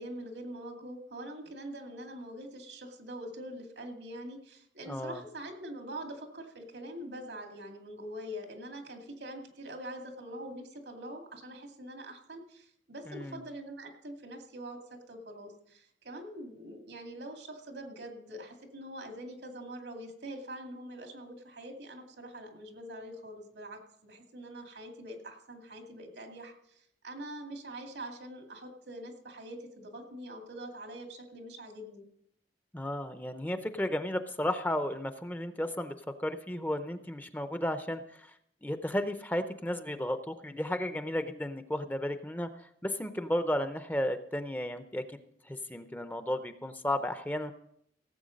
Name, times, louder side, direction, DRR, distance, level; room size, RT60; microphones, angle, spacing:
voice 1, 0.0-32.0, right 1 dB, 90° right, 3 dB, 2.3 m, -44 dB
voice 2, 4.9-5.2 13.1-13.4 32.7-38.3 38.6-47.5, left 1 dB, 10° left, 9 dB, 0.6 m, -34 dB
17.0 x 7.9 x 5.2 m, 0.71 s
head